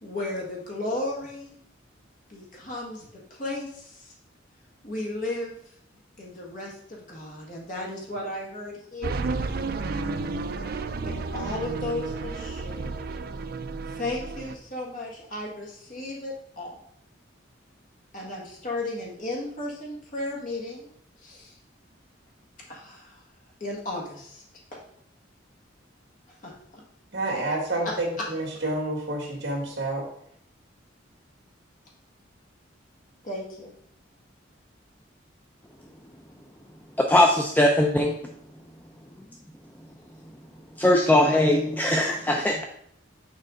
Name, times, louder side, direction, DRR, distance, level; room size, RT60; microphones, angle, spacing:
voice 1, 0.0-1.6 2.3-3.1 3.3-4.1 4.8-5.6 6.2-9.3 11.0-13.1 14.0-16.8 18.1-20.9 21.2-21.5 22.7-23.2 23.6-24.4 24.7-24.8 26.4-26.5 27.8-28.3 33.2-33.8, left 2 dB, 45° left, -2 dB, 1.7 m, -34 dB
sound 1, 9.0-14.6, right 3 dB, 50° right, 0.4 m, -32 dB
voice 2, 27.1-30.1, right 2 dB, 70° right, 0 dB, 2.0 m, -29 dB
voice 3, 37.0-38.1 40.8-42.6, left 1 dB, 10° left, 1 dB, 0.4 m, -20 dB
6.6 x 4.8 x 3.8 m, 0.68 s
head